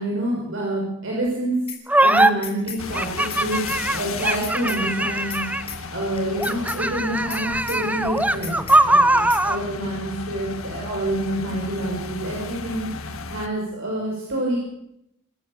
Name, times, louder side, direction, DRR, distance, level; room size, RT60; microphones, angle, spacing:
voice 1, 0.0-1.5 2.0-5.6 5.9-14.6, right 1 dB, 65° right, -2 dB, 6.5 m, -27 dB
sound 1, 1.7-1.8 2.2-2.8 3.2-3.4 3.7-3.8 4.2-4.8 5.2-5.4 5.7-5.8 6.2-6.8 7.2-7.4 7.7-7.8 8.2-8.8 9.2-9.4, left 7 dB, 30° left, 4.2 m, -35 dB
sound 2, 1.9-2.3 2.9-5.8 6.4-9.6, right 1 dB, 5° right, 1.0 m, -20 dB
sound 3, 2.8-13.5, left 4 dB, 80° left, 1.7 m, -35 dB
27.5 x 15.0 x 6.9 m, 0.80 s
head